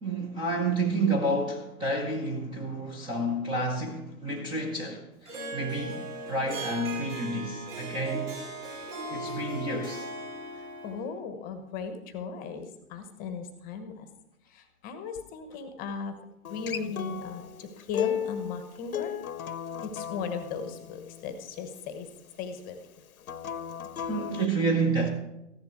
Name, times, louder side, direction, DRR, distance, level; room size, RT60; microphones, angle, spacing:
voice 1, 0.0-8.4 9.1-10.1 24.1-25.1, right 2 dB, 10° right, 0.8 m, -30 dB
Harp, 5.2-11.1, right 2 dB, 50° right, 5.7 m, -38 dB
voice 2, 10.5-14.1 14.4-16.1 16.5-19.2 19.8-22.1 22.4-22.8, left 5 dB, 20° left, 1.0 m, -37 dB
Acoustic guitar, 16.4-21.6 23.2-24.5, left 9 dB, 70° left, 0.9 m, -35 dB
14.5 x 10.5 x 4.6 m
figure-of-eight pair, 125°, 44 cm